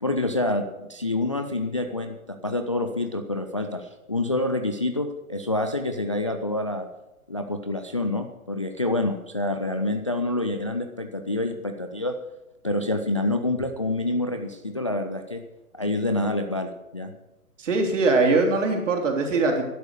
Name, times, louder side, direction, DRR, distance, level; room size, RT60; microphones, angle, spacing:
voice 1, 0.0-6.9 7.3-12.2 12.6-15.4 15.7-17.1, left 2 dB, 25° left, 6 dB, 0.4 m, -27 dB
voice 2, 17.6-19.6, right 3 dB, 55° right, 2 dB, 3.4 m, -21 dB
12.5 x 11.0 x 6.6 m, 1.0 s
figure-of-eight pair, 130°, 45 cm